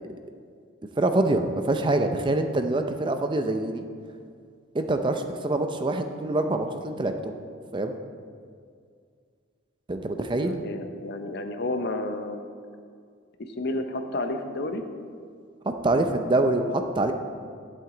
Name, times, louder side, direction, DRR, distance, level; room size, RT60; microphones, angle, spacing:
voice 1, 1.0-3.8 4.7-7.3 7.7-7.9 9.9-10.5 15.7-17.1, right 2 dB, 25° right, 6 dB, 0.5 m, -25 dB
voice 2, 10.1-12.4 13.6-14.8, left 2 dB, 55° left, 6 dB, 0.7 m, -31 dB
11.0 x 7.9 x 3.8 m, 2.2 s
head